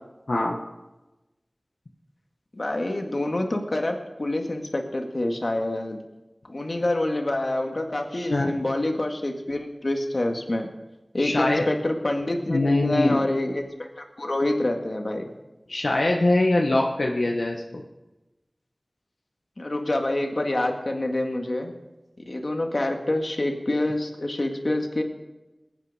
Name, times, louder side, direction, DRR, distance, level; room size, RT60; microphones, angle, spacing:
voice 1, 2.5-6.0 6.4-10.7 11.1-15.3 19.6-21.7 22.3-25.0, left 1 dB, 60° left, 3 dB, 1.9 m, -27 dB
voice 2, 8.1-8.5 11.2-11.7 12.5-13.2 15.7-17.8, left 2 dB, 85° left, -1 dB, 1.3 m, -23 dB
21.0 x 9.1 x 5.0 m, 1.0 s
wide cardioid pair, 45°, 0 cm